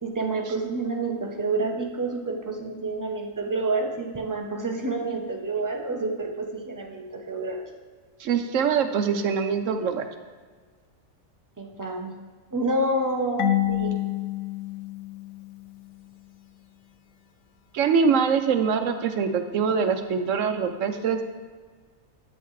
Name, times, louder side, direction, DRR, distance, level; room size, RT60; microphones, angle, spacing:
voice 1, 0.0-7.6 11.6-12.1 12.5-14.0, right 2 dB, 20° right, 1 dB, 0.6 m, -28 dB
voice 2, 8.2-10.0 17.7-21.2, right 6 dB, 70° right, 7 dB, 1.0 m, -23 dB
Marimba xylophone / Wood, 13.4-16.1, left 12 dB, 80° left, 1.0 m, -28 dB
8.9 x 7.8 x 3.2 m, 1.5 s
omnidirectional pair, 1.4 m